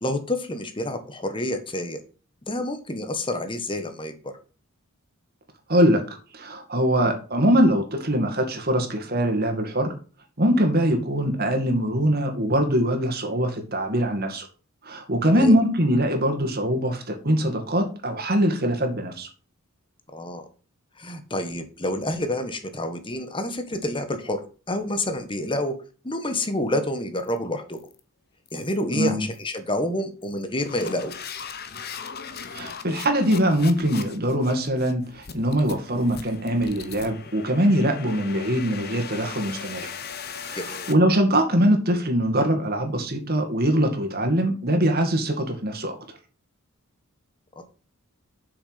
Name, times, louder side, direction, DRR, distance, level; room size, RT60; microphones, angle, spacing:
voice 1, 0.0-2.0 2.5-4.3 15.2-15.5 20.1-20.4 21.0-24.4 24.7-25.8 26.0-27.8 28.5-31.1 40.5-40.9 47.6-47.7, left 1 dB, 25° left, 8 dB, 1.4 m, -28 dB
voice 2, 5.7-6.0 6.3-9.9 10.4-14.5 14.8-19.3 28.9-29.2 32.5-39.9 40.4-46.0, equal, 45° right, 4 dB, 2.2 m, -22 dB
sound 1, 27.2-27.4 27.7-28.0 28.5-28.8 29.3-29.6 30.2-40.9, left 6 dB, 45° left, 1.1 m, -39 dB
7.8 x 6.4 x 5.9 m, 0.36 s
head